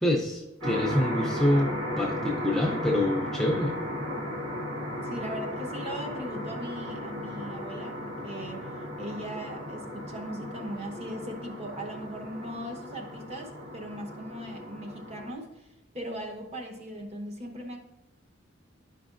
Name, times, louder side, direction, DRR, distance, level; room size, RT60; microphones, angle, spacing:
voice 1, 0.0-3.7, left 1 dB, ahead, -2 dB, 0.5 m, -26 dB
sound 1, 0.6-15.3, left 1 dB, 80° right, 1.6 m, -35 dB
voice 2, 5.0-8.7 9.0-15.7 15.9-17.8, equal, 30° right, 3 dB, 0.9 m, -39 dB
10.5 x 5.1 x 2.5 m, 0.95 s
head